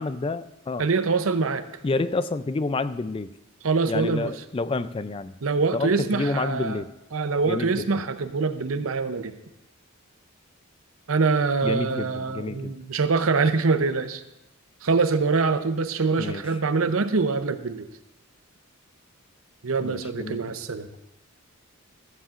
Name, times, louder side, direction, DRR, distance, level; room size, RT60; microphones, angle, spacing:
voice 1, 0.0-0.9 1.8-3.3 3.9-5.3 5.7-6.9 7.4-7.9 11.6-12.8 16.2-16.4 19.8-20.4, left 3 dB, 25° left, 13 dB, 0.3 m, -29 dB
voice 2, 0.8-1.6 3.6-4.3 5.4-6.8 7.1-9.3 11.1-14.2 14.8-17.9 19.6-20.9, right 4 dB, 70° right, 10 dB, 0.7 m, -24 dB
14.5 x 14.5 x 2.5 m, 0.90 s
head